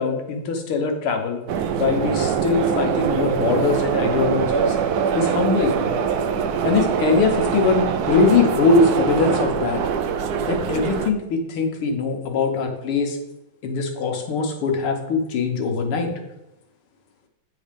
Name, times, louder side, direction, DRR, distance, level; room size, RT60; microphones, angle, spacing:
voice 1, 0.0-1.4 1.8-4.8 5.1-5.8 6.6-9.8 10.5-13.2 13.6-16.1, left 4 dB, 85° left, 3 dB, 2.1 m, -22 dB
sound 1, 1.5-11.1, right 7 dB, 85° right, 0.8 m, -23 dB
9.2 x 4.3 x 5.1 m, 0.91 s
omnidirectional pair, 2.3 m